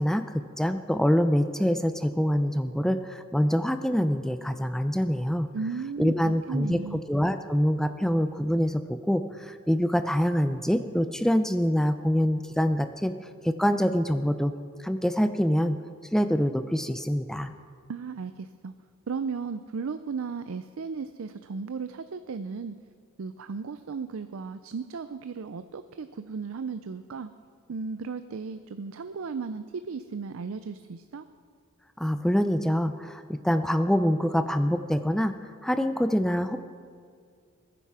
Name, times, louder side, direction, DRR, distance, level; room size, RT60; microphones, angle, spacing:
voice 1, 0.0-5.5 6.0-13.1 13.4-14.5 14.8-15.8 16.1-17.5 32.0-35.3 35.6-36.6, equal, ahead, 9 dB, 0.4 m, -25 dB
voice 2, 5.5-7.0 17.9-18.7 19.1-22.8 23.2-27.3 27.7-31.3, right 5 dB, 65° right, 11 dB, 0.4 m, -35 dB
21.0 x 10.0 x 4.8 m, 2.1 s
head